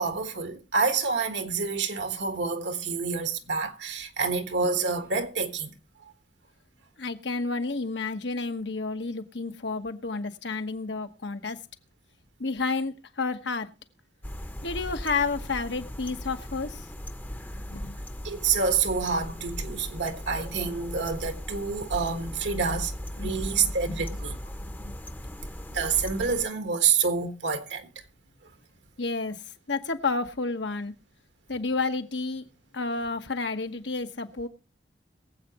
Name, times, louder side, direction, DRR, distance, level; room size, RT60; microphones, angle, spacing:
voice 1, 0.0-5.7 18.2-22.9 23.2-24.4 25.7-27.9, right 5 dB, 80° right, 1.4 m, -28 dB
voice 2, 7.0-11.6 12.4-13.7 14.6-16.9 17.7-18.0 23.2-24.0 24.6-25.0 29.0-29.4 29.7-30.9 31.5-32.4 32.7-34.5, left 3 dB, 90° left, 1.2 m, -31 dB
sound 1, 14.2-26.5, equal, 10° left, 0.6 m, -38 dB
22.5 x 7.9 x 2.9 m
head